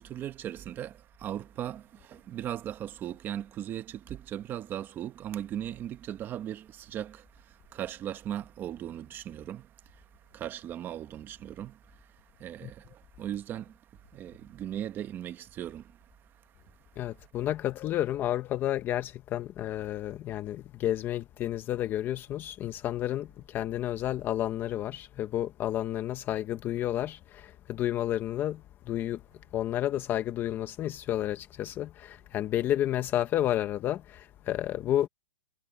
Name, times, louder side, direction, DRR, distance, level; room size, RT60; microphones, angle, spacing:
voice 1, 0.0-17.2, right 11 dB, 15° right, 1.0 m, -39 dB
voice 2, 17.0-29.2 29.5-35.1, left 12 dB, 15° left, 0.7 m, -31 dB
hypercardioid pair, 165°, 15 cm